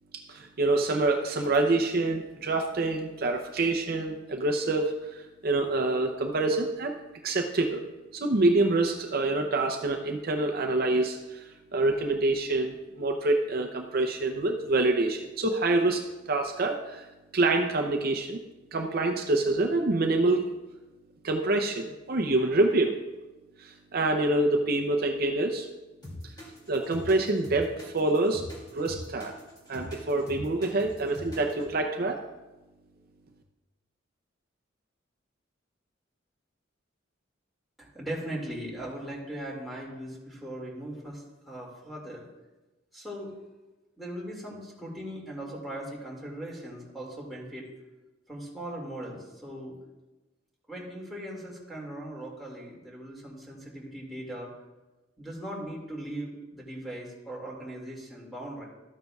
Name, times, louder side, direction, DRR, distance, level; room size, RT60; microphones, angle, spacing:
voice 1, 0.1-6.9 7.2-7.8 8.1-11.5 11.7-17.1 17.3-18.4 18.7-20.5 21.2-23.0 23.6-25.7 26.7-28.4 28.7-29.3 29.7-32.2, right 2 dB, 50° right, 3 dB, 0.6 m, -26 dB
sound 1, 26.0-31.7, left 1 dB, 25° left, 2.4 m, -42 dB
voice 2, 37.8-42.3 42.9-43.3 44.0-47.7 48.3-49.8 50.7-54.5 55.2-58.7, right 1 dB, ahead, -5 dB, 2.1 m, -39 dB
13.0 x 9.3 x 2.4 m, 1.1 s
head